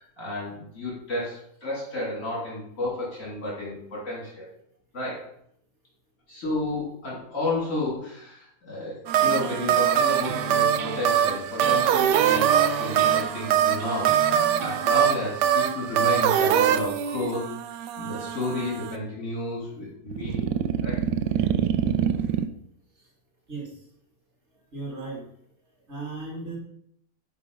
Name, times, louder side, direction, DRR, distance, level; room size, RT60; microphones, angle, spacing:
voice 1, 0.0-4.5 4.9-5.3 6.3-20.5 20.8-21.0, left 2 dB, 50° left, -6 dB, 3.3 m, -32 dB
sound 1, 9.1-19.0 20.1-22.5, right 9 dB, 80° right, 1.2 m, -23 dB
voice 2, 24.7-25.3 25.9-26.6, right 3 dB, 40° right, -1 dB, 2.0 m, -35 dB
8.4 x 4.4 x 5.3 m, 0.70 s
omnidirectional pair, 1.9 m